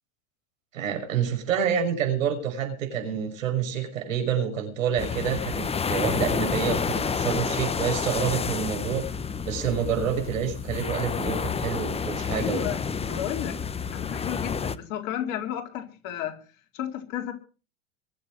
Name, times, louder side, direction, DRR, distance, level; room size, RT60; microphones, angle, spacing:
voice 1, 0.7-9.0 9.4-12.7, right 8 dB, 75° right, 6 dB, 6.1 m, -28 dB
sound 1, 5.0-14.8, left 5 dB, 15° left, 0.9 m, -29 dB
voice 2, 12.3-12.8 13.0-13.6 13.9-16.4 16.7-17.3, left 10 dB, 50° left, 3 dB, 4.4 m, -32 dB
22.5 x 8.3 x 6.2 m, 0.37 s
hypercardioid pair, 90°, 40 cm